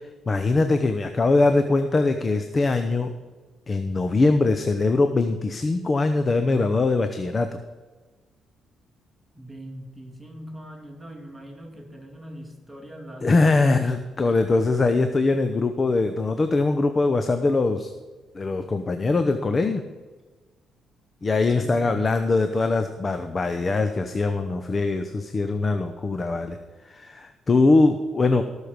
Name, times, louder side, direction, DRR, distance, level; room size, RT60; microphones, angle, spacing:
voice 1, 0.0-3.1 3.7-7.6 13.2-17.9 18.3-19.8 21.2-26.6 26.8-28.4, left 3 dB, 30° left, 8 dB, 0.8 m, -22 dB
voice 2, 9.3-14.4 21.5-22.0, right 1 dB, ahead, 0 dB, 2.6 m, -42 dB
18.0 x 6.5 x 5.1 m, 1.3 s
cardioid pair, 90°, 0 cm